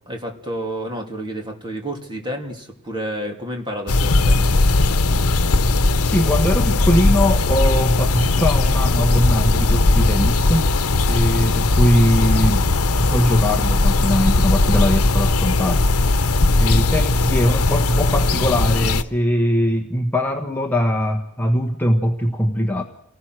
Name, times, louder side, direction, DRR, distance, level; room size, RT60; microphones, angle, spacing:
voice 1, 0.1-4.7, right 1 dB, 20° right, 2 dB, 3.2 m, -30 dB
sound 1, 3.9-19.0, left 2 dB, 80° left, 1.0 m, -18 dB
voice 2, 6.0-10.6 11.1-12.7 13.0-15.8 16.6-22.8, equal, 10° left, 2 dB, 1.3 m, -21 dB
28.5 x 19.5 x 6.3 m, 0.74 s
head